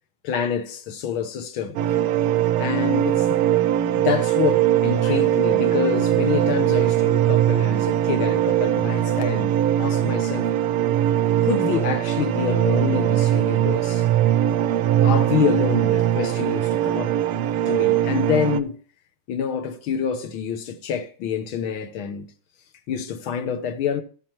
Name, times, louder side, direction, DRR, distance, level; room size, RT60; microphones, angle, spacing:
voice 1, 0.2-1.8 2.6-3.5 4.0-9.5 9.8-10.5 11.4-14.1 15.0-17.1 17.7-18.8 19.3-22.3 22.9-24.0, left 7 dB, 75° left, 1.8 m, -27 dB
sound 1, 1.8-18.6, right 11 dB, 85° right, 1.6 m, -21 dB
13.5 x 9.2 x 3.0 m
omnidirectional pair, 2.4 m